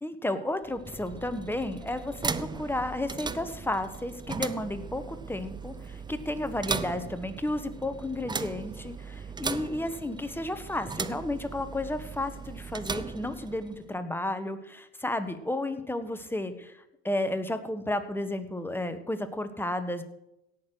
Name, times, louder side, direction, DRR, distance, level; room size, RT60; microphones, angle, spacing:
voice 1, 0.0-20.0, left 1 dB, 5° left, 9 dB, 1.2 m, -32 dB
sound 1, 0.6-13.9, right 5 dB, 15° right, 0.6 m, -38 dB
17.0 x 6.5 x 6.3 m, 0.85 s
supercardioid pair, 100°, 32 cm